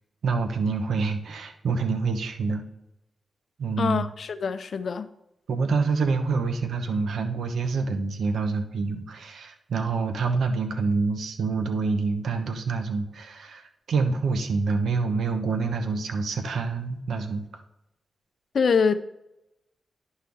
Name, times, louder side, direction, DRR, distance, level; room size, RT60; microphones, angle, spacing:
voice 1, 0.2-2.6 3.6-4.1 5.5-17.4, right 4 dB, 80° right, 0.9 m, -27 dB
voice 2, 3.8-5.1 18.5-18.9, left 5 dB, 65° left, 0.5 m, -24 dB
11.0 x 4.4 x 3.5 m
cardioid pair, 60°, 0 cm